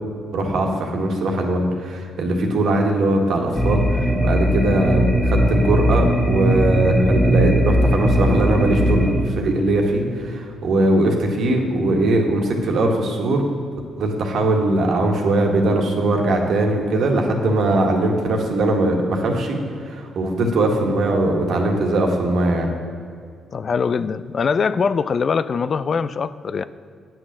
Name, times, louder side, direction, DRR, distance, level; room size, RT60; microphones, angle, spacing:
voice 1, 0.3-13.5 14.0-22.7, right 2 dB, 65° right, 2 dB, 1.8 m, -20 dB
sound 1, 3.5-9.1, equal, 10° left, 1.5 m, -18 dB
voice 2, 23.5-26.6, left 5 dB, 45° left, 14 dB, 0.4 m, -22 dB
9.8 x 6.2 x 7.5 m, 2.2 s
cardioid pair, 90°, 0 cm